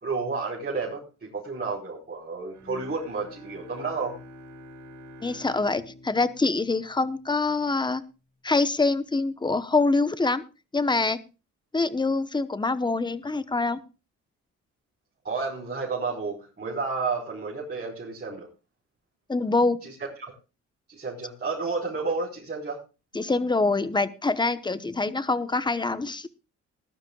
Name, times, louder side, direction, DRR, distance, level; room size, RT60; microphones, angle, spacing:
voice 1, 0.0-4.2 15.2-18.5 19.8-20.3 20.9-22.8, right 4 dB, 35° right, -5 dB, 4.7 m, -31 dB
Bowed string instrument, 2.5-7.7, equal, 80° right, 5.2 m, -47 dB
voice 2, 5.2-8.0 8.4-10.4 10.7-11.2 11.7-13.8 19.3-19.8 23.1-26.3, left 3 dB, 15° left, 14 dB, 1.0 m, -25 dB
20.0 x 12.0 x 2.4 m, 0.31 s
cardioid pair, 90°, 30 cm